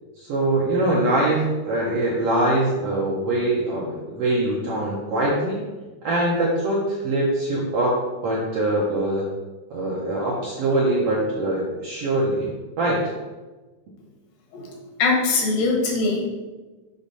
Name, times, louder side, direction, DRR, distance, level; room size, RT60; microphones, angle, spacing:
voice 1, 0.2-5.6 6.0-8.0 8.2-9.2 9.7-12.5 12.8-13.0, right 1 dB, 70° right, -4 dB, 1.5 m, -23 dB
voice 2, 15.0-16.3, left 3 dB, 80° left, -1 dB, 2.9 m, -21 dB
6.7 x 3.1 x 5.4 m, 1.2 s
omnidirectional pair, 3.9 m